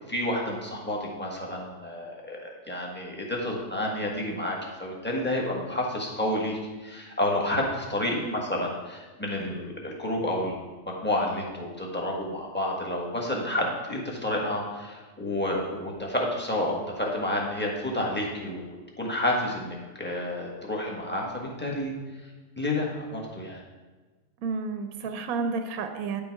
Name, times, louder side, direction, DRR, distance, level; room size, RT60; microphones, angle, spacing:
voice 1, 0.0-10.6 11.0-21.9 22.6-23.6, left 1 dB, 5° left, -2 dB, 1.2 m, -30 dB
voice 2, 24.4-26.2, right 4 dB, 70° right, 7 dB, 1.0 m, -31 dB
9.8 x 5.4 x 4.6 m, 1.3 s
omnidirectional pair, 1.7 m